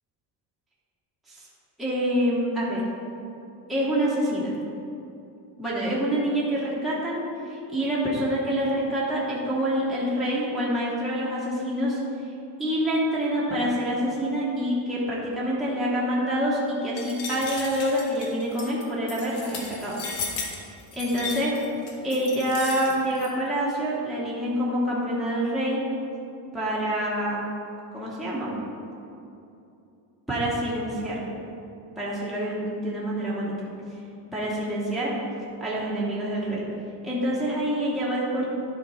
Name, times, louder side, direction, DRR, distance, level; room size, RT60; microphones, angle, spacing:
voice 1, 1.8-2.8 3.7-4.5 5.6-12.0 12.6-20.0 20.9-21.5 22.0-25.8 26.5-27.4 27.9-28.5 30.3-31.3 32.0-33.5 34.3-35.1 35.6-36.6 37.0-38.5, equal, ahead, -8 dB, 1.1 m, -26 dB
sound 1, 17.0-23.3, left 4 dB, 65° left, 1.4 m, -35 dB
11.5 x 3.8 x 5.5 m, 2.8 s
cardioid pair, 175°, 42 cm